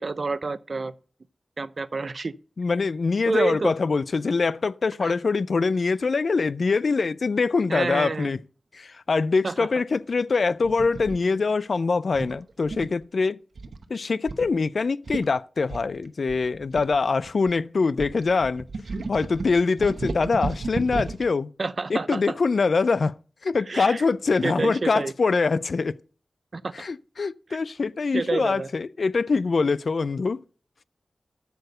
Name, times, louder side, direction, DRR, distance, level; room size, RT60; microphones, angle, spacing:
voice 1, 0.0-0.9 1.6-2.3 3.2-3.8 5.0-5.2 7.7-8.3 9.4-9.7 21.6-22.4 23.7-24.0 24.4-25.1 26.5-26.7 28.1-28.7, right 3 dB, 50° right, 0.4 m, -28 dB
voice 2, 2.6-8.4 8.7-13.4 13.9-18.7 19.1-21.5 21.9-23.2 23.4-26.0 26.7-30.4, left 4 dB, 60° left, 0.4 m, -24 dB
sound 1, 10.6-11.2 12.1-13.0 13.6-13.8 14.3-14.5 14.8-14.9 15.1-15.3 15.7-17.5 18.0-21.3, right 3 dB, 75° right, 0.8 m, -33 dB
8.0 x 6.9 x 6.6 m
wide cardioid pair, 110°, 0 cm